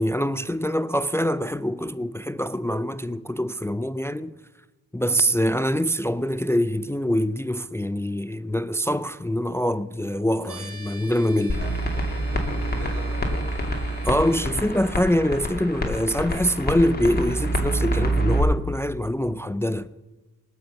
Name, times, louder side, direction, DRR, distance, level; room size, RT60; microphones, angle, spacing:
voice 1, 0.0-4.4 4.9-11.6 14.0-19.9, equal, 5° left, 0.4 m, -24 dB
voice 2, 5.0-5.3 11.6-11.8 12.2-13.8, right 3 dB, 85° right, 3.0 m, -41 dB
sound 1, 10.4-14.5, right 3 dB, 35° right, 2.8 m, -44 dB
sound 2, 11.5-18.4, right 1 dB, 25° left, 2.6 m, -26 dB
19.0 x 6.4 x 6.9 m
supercardioid pair, 50°, 39 cm